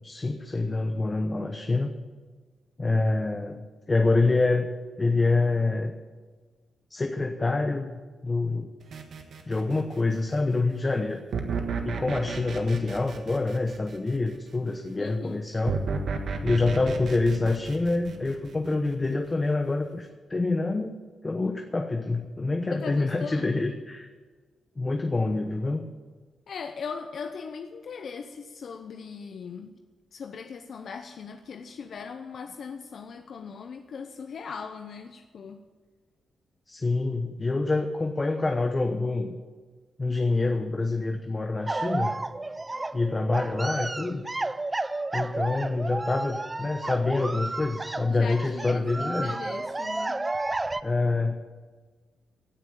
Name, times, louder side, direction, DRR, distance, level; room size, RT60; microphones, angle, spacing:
voice 1, 0.0-1.9 2.8-4.7 5.0-5.9 6.9-8.7 9.5-11.2 11.8-15.8 16.4-21.0 21.2-24.1 24.8-25.8 36.7-39.4 40.0-42.1 42.9-44.2 45.1-49.4 50.8-51.4, left 3 dB, 25° left, 5 dB, 1.0 m, -26 dB
sound 1, 8.9-10.1 11.3-14.4 15.7-18.9, right 4 dB, 70° right, 1.5 m, -33 dB
voice 2, 15.0-15.4 22.7-23.7 26.5-29.7 30.1-35.6 48.1-50.2, left 5 dB, 65° left, 6 dB, 0.7 m, -39 dB
sound 2, 41.7-50.8, right 2 dB, 20° right, 0.5 m, -32 dB
16.5 x 6.1 x 8.9 m, 1.4 s
cardioid pair, 90°, 0 cm